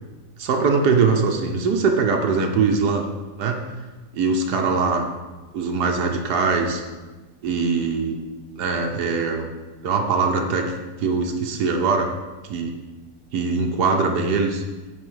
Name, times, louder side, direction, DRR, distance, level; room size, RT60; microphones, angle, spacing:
voice 1, 0.4-3.0 3.4-3.6 4.1-5.1 5.5-6.8 7.4-8.2 8.6-9.5 9.8-10.7 11.0-12.1 12.5-12.8 13.3-14.6, right 4 dB, 85° right, 2 dB, 1.5 m, -21 dB
9.7 x 4.3 x 6.3 m, 1.2 s
omnidirectional pair, 1.7 m